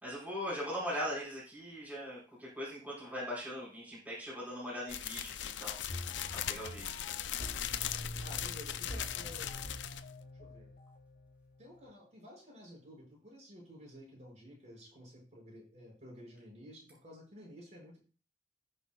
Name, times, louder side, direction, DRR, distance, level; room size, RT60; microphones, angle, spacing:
voice 1, 0.0-5.8 6.3-6.9, equal, 10° right, -6 dB, 5.3 m, -40 dB
sound 1, 4.9-10.1, left 10 dB, 75° left, 0.6 m, -39 dB
sound 2, 5.9-11.9, left 1 dB, 50° left, 2.7 m, -46 dB
voice 2, 8.2-9.7 10.4-10.7 11.6-18.0, equal, 40° right, -3 dB, 6.5 m, -52 dB
20.0 x 6.7 x 2.5 m, 0.37 s
head